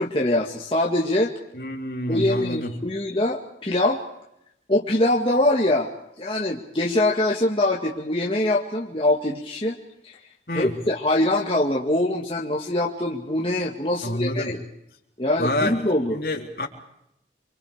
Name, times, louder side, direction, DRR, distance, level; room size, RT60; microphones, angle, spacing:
voice 1, 0.0-1.3 2.1-4.0 4.7-5.9 6.2-9.8 10.0-10.2 10.5-14.6 15.2-16.2, left 1 dB, 30° left, -2 dB, 2.0 m, -23 dB
voice 2, 1.5-2.8 10.5-10.7 14.0-14.5 15.4-15.8 16.1-16.7, left 1 dB, 55° left, 1 dB, 3.7 m, -27 dB
29.0 x 25.0 x 5.0 m, 0.79 s
head